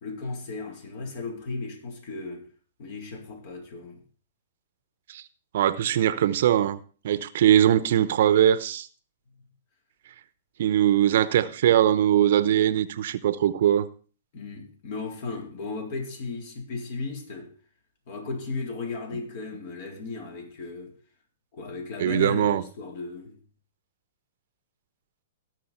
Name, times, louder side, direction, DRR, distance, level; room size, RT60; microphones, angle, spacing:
voice 1, 0.0-2.4 2.8-4.0 9.3-9.5 14.3-17.5 18.1-20.9 21.5-23.4, left 3 dB, 55° left, 4.0 m, -35 dB
voice 2, 5.5-6.8 7.0-8.9 10.6-13.9 22.0-22.6, right 11 dB, 60° right, 0.8 m, -21 dB
18.5 x 6.3 x 4.4 m
hypercardioid pair, 125°, 0 cm